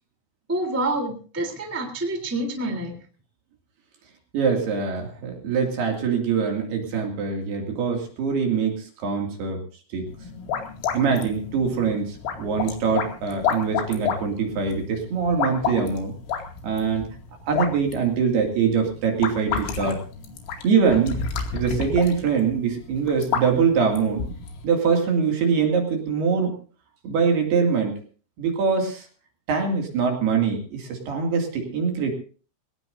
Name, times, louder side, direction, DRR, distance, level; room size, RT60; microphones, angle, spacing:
voice 1, 0.5-3.0, right 2 dB, 5° right, 3 dB, 2.1 m, -27 dB
voice 2, 4.3-9.6 9.9-10.1 10.9-16.1 16.6-17.1 17.5-20.0 20.6-21.2 21.5-24.2 24.6-26.6 27.0-28.0 28.4-29.1 29.5-32.1, right 5 dB, 55° right, 2 dB, 4.1 m, -23 dB
sound 1, 10.1-24.6, left 6 dB, 80° left, 4.9 m, -31 dB
22.0 x 18.5 x 2.7 m, 0.39 s
omnidirectional pair, 5.8 m